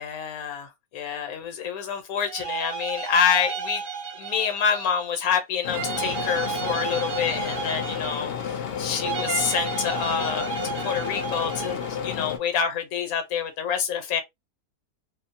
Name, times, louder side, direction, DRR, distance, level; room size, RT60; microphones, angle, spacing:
voice 1, 0.0-3.8 4.1-11.8 12.0-14.2, left 7 dB, 85° left, 1.1 m, -27 dB
sound 1, 2.2-5.1 5.7-8.5 9.0-12.0, right 6 dB, 60° right, 0.9 m, -33 dB
sound 2, 5.6-12.4, left 7 dB, 65° left, 0.6 m, -31 dB
2.6 x 2.0 x 2.5 m
omnidirectional pair, 1.5 m